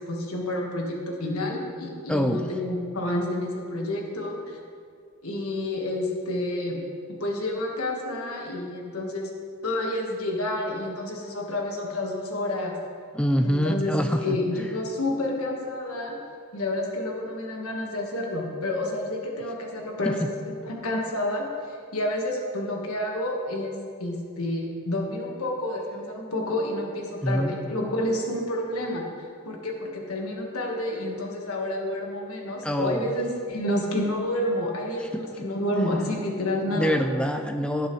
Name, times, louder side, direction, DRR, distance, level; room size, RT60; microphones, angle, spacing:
voice 1, 0.0-4.6 5.2-6.8 7.2-9.3 9.6-12.7 13.4-16.2 16.5-20.2 20.7-37.0, left 1 dB, 80° left, 0 dB, 1.5 m, -29 dB
voice 2, 2.1-2.5 13.1-14.4 20.1-20.2 27.2-27.5 32.6-33.1 35.0-35.2 36.7-37.9, equal, 5° left, 6 dB, 0.3 m, -25 dB
17.5 x 6.8 x 3.2 m, 2.3 s
head